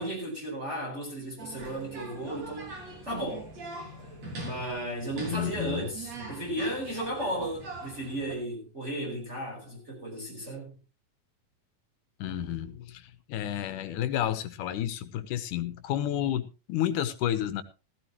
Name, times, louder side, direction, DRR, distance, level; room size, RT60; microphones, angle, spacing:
voice 1, 0.0-2.7 3.0-3.4 4.4-10.8, right 1 dB, 20° right, 4.6 m, -34 dB
sound 1, 1.4-8.3, right 2 dB, 55° right, 4.7 m, -42 dB
voice 2, 5.3-5.9 12.2-17.6, left 11 dB, 80° left, 2.5 m, -31 dB
15.5 x 15.0 x 3.1 m
omnidirectional pair, 3.6 m